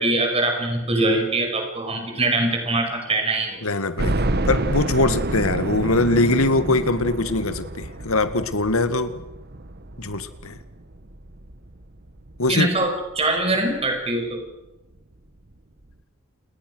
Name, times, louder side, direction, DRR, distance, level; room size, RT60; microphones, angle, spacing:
voice 1, 0.0-3.6 12.5-14.4, right 2 dB, 30° right, 3 dB, 5.8 m, -23 dB
voice 2, 3.6-9.1 10.0-10.6 12.4-12.7, left 2 dB, 80° left, 11 dB, 2.0 m, -22 dB
sound 1, 4.0-12.9 13.4-13.5 13.8-13.9 15.1-15.2 15.5-15.6, right 2 dB, 50° right, 1.3 m, -29 dB
29.5 x 20.0 x 6.4 m, 0.97 s
head